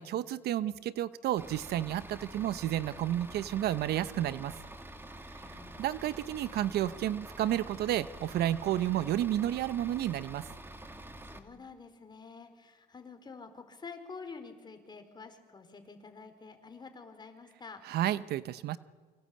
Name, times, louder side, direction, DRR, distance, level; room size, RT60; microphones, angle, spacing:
voice 1, 0.0-4.6 5.3-5.4 5.8-10.5 17.8-18.8, right 12 dB, 70° right, 15 dB, 0.9 m, -31 dB
Bus / Idling, 1.4-11.4, right 1 dB, 15° right, 2.3 m, -47 dB
voice 2, 5.3-5.9 11.2-17.8, left 4 dB, 25° left, 6 dB, 4.6 m, -48 dB
27.5 x 25.0 x 8.7 m, 1.5 s
cardioid pair, 110°, 17 cm